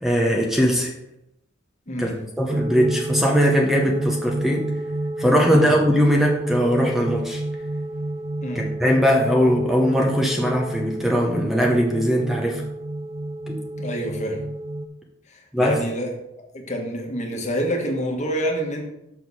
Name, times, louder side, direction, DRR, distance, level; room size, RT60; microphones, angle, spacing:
voice 1, 0.0-0.9 2.0-2.1 2.4-4.7 5.2-7.4 8.8-12.6 13.5-13.6 15.5-15.8, equal, ahead, -1 dB, 0.9 m, -20 dB
voice 2, 1.9-2.2 5.5-5.7 8.4-8.7 13.8-14.4 15.3-16.1 16.5-18.8, equal, 40° left, 1 dB, 1.4 m, -27 dB
sound 1, 2.5-14.9, right 1 dB, 30° right, 0.5 m, -29 dB
6.7 x 6.3 x 4.1 m, 0.85 s
head